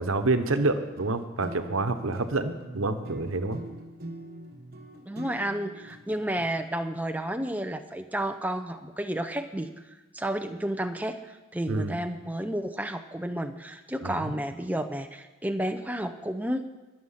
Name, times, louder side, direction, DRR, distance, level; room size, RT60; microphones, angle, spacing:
voice 1, 0.0-3.6 11.7-12.0 14.0-14.4, right 2 dB, 80° right, 9 dB, 1.1 m, -28 dB
sound 1, 0.8-6.4, right 2 dB, 45° right, 1.5 m, -43 dB
voice 2, 5.0-9.8 10.1-16.7, right 1 dB, 10° right, 7 dB, 0.7 m, -31 dB
22.0 x 7.7 x 5.7 m, 1.1 s
head